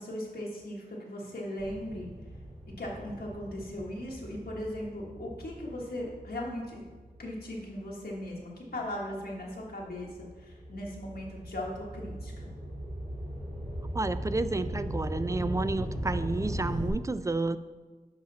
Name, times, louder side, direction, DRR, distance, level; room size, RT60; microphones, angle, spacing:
voice 1, 0.0-2.1 2.8-6.8 7.2-12.5, left 1 dB, 75° left, -4 dB, 1.3 m, -38 dB
sound 1, 1.6-8.3 8.9-16.9, equal, 45° right, 2.1 m, -39 dB
voice 2, 13.9-17.6, right 2 dB, 20° right, 13 dB, 0.3 m, -30 dB
7.2 x 5.0 x 3.9 m, 1.3 s
cardioid pair, 50°, 16 cm